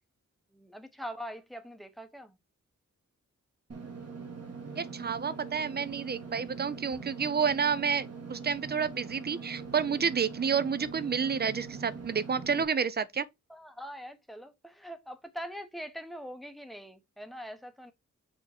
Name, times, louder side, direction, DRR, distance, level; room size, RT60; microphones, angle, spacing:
voice 1, 0.5-2.4 9.9-10.1 13.5-17.9, equal, ahead, 0.8 m, -43 dB
Engine / Mechanisms, 3.7-12.6, right 5 dB, 55° right, 1.9 m, -43 dB
voice 2, 4.8-13.3, right 6 dB, 35° right, 0.5 m, -30 dB
6.4 x 3.5 x 4.2 m
wide cardioid pair, 155°, 30 cm